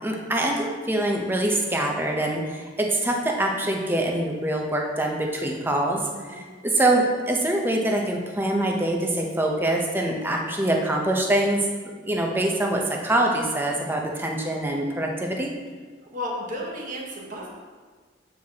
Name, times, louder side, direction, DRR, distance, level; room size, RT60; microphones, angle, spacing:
voice 1, 0.0-6.0 6.3-11.6 12.0-15.5, right 1 dB, 10° right, 0 dB, 0.6 m, -24 dB
voice 2, 16.1-17.5, left 1 dB, 45° right, -2 dB, 1.1 m, -33 dB
7.7 x 4.7 x 2.8 m, 1.5 s
head